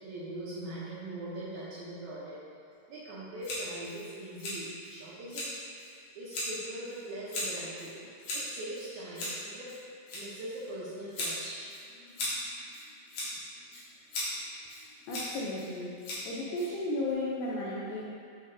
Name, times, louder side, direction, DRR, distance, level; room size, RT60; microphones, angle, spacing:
voice 1, 0.0-2.4 2.9-5.4 6.1-7.9 8.3-9.7 10.1-11.7, right 1 dB, 80° right, -8 dB, 1.7 m, -41 dB
Scissors, 3.4-17.1, left 1 dB, 60° left, 2.6 m, -39 dB
voice 2, 15.1-16.0 16.3-18.0, left 1 dB, 80° left, -5 dB, 2.1 m, -34 dB
9.3 x 3.8 x 2.7 m, 2.4 s
omnidirectional pair, 4.4 m